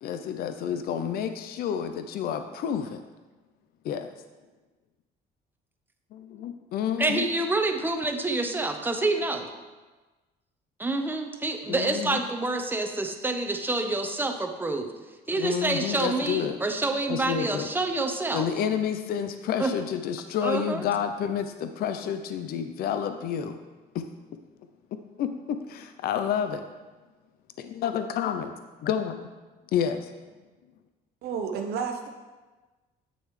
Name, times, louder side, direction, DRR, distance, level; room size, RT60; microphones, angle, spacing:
voice 1, 0.0-3.0 3.8-4.1 6.1-7.3 11.7-12.2 15.4-16.6 17.1-17.7 18.3-23.6 23.9-24.1 25.2-26.6 27.6-28.5 28.8-29.2 29.7-30.1, left 8 dB, 65° left, 8 dB, 0.5 m, -29 dB
voice 2, 7.0-9.5 10.8-14.9 15.3-18.5 19.6-19.7 20.4-20.8, right 2 dB, 10° right, 5 dB, 0.7 m, -27 dB
voice 3, 31.2-32.1, right 6 dB, 70° right, 3 dB, 0.7 m, -31 dB
8.5 x 6.4 x 3.2 m, 1.2 s
cardioid pair, 110°, 17 cm